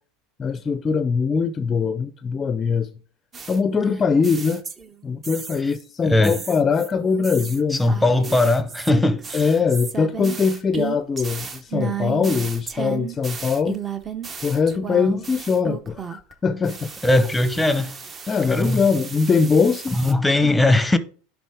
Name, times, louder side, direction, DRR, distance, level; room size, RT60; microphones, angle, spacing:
voice 1, 0.4-2.9 3.5-4.6 5.0-7.8 9.3-13.8 14.4-16.9 18.3-19.9 20.4-20.6, left 5 dB, 25° left, 0.5 m, -22 dB
sound 1, 3.3-4.9 5.2-5.8 6.2-16.3 16.6-20.1, right 7 dB, 25° right, 0.8 m, -34 dB
voice 2, 6.0-6.4 7.7-9.5 17.0-17.9 18.5-18.8 19.9-21.0, left 2 dB, 5° left, 0.8 m, -19 dB
10.5 x 3.6 x 3.5 m
hypercardioid pair, 90°, 0 cm